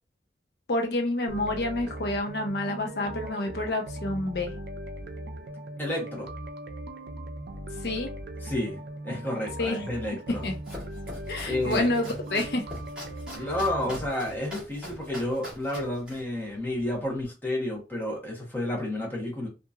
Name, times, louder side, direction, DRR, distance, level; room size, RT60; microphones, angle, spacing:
voice 1, 0.7-4.5 7.8-8.1 9.6-9.9 10.4-10.5 11.3-12.7, left 2 dB, 70° left, 0.7 m, -28 dB
sound 1, 1.3-14.1, right 1 dB, 65° right, 0.4 m, -39 dB
voice 2, 5.8-6.3 8.4-10.4 11.5-12.1 13.3-19.5, left 1 dB, 10° left, 0.9 m, -31 dB
Domestic sounds home sounds, 10.3-17.2, left 1 dB, 5° right, 1.2 m, -44 dB
2.8 x 2.5 x 2.3 m
head